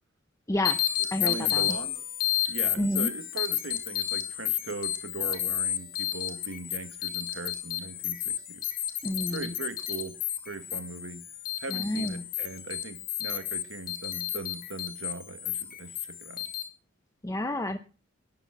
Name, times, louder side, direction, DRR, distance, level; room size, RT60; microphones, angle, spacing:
voice 1, 0.5-0.8 1.1-1.8 2.8-3.1 9.0-9.5 11.7-12.2 17.2-17.8, left 1 dB, 15° left, 0.8 m, -30 dB
sound 1, 0.6-16.6, left 12 dB, 45° left, 2.9 m, -32 dB
voice 2, 1.2-2.0 2.5-8.7 9.3-10.2 10.4-11.3 11.6-16.5, right 3 dB, 65° right, 1.6 m, -39 dB
12.0 x 11.0 x 5.9 m
head